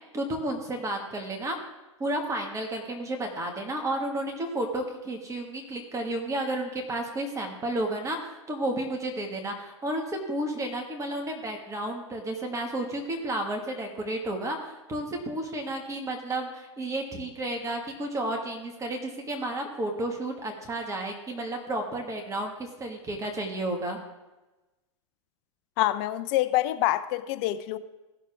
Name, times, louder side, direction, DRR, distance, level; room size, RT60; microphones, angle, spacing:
voice 1, 0.1-1.6 2.0-24.0, right 1 dB, 20° right, 1.7 m, -32 dB
voice 2, 25.8-27.8, left 15 dB, 50° left, 0.7 m, -26 dB
16.5 x 6.6 x 3.5 m
hypercardioid pair, 105°, 16 cm